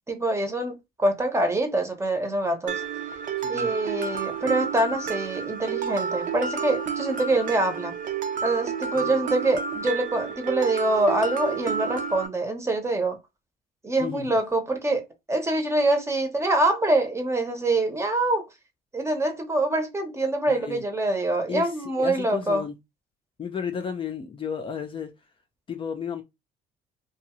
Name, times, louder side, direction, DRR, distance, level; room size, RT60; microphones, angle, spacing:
voice 1, 0.1-2.8 3.5-8.0 8.4-13.2 13.8-15.0 15.3-18.4 18.9-22.6, right 2 dB, 15° right, 0.8 m, -25 dB
Mallet percussion, 2.7-12.3, right 6 dB, 50° right, 0.6 m, -30 dB
voice 2, 3.4-3.7 9.0-9.2 14.0-14.4 20.5-20.8 21.5-22.8 23.4-25.1 25.7-26.2, left 7 dB, 30° left, 0.5 m, -33 dB
2.6 x 2.3 x 2.9 m
cardioid pair, 110°, 17 cm